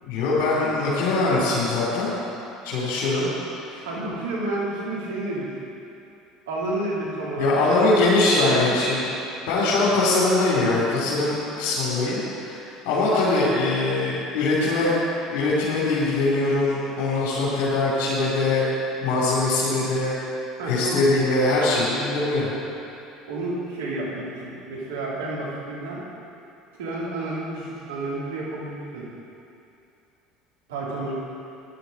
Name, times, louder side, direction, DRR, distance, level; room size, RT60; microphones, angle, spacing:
voice 1, 0.0-2.1 2.6-3.3 3.7-3.8 7.4-9.1 9.5-14.9 15.3-18.6 19.0-20.1 20.7-22.5, left 2 dB, 65° left, -8 dB, 3.2 m, -22 dB
voice 2, 3.8-5.5 6.5-8.7 20.6-21.1 23.3-26.1 26.8-29.1 30.7-31.1, right 2 dB, 80° right, -6 dB, 3.3 m, -30 dB
15.5 x 11.5 x 4.2 m, 2.7 s
hypercardioid pair, 70°, 0 cm